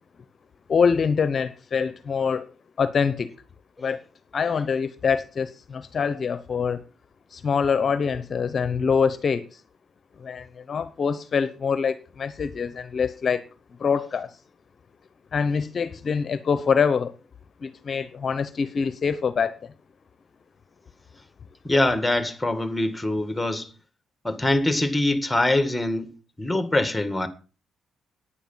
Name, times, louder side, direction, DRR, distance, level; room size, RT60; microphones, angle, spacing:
voice 1, 0.7-2.5 2.8-3.3 3.8-4.0 4.3-6.8 7.3-9.6 10.2-13.5 13.8-14.4 15.3-17.1 17.6-19.7, left 6 dB, 45° left, 0.9 m, -25 dB
voice 2, 21.6-23.7 24.2-26.1 26.4-27.3, left 1 dB, 10° left, 1.9 m, -23 dB
10.0 x 9.9 x 5.7 m
cardioid pair, 90°, 0 cm